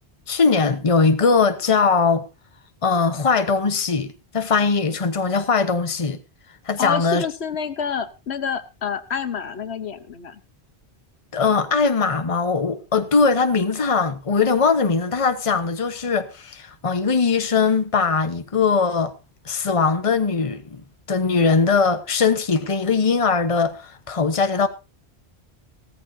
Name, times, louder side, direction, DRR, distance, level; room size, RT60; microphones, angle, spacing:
voice 1, 0.3-2.3 2.8-6.2 6.7-7.3 11.3-19.1 19.4-20.8 21.1-24.7, left 4 dB, 30° left, 1.1 m, -20 dB
voice 2, 6.8-10.4, left 6 dB, 75° left, 1.2 m, -28 dB
16.5 x 14.0 x 2.7 m
omnidirectional pair, 1.1 m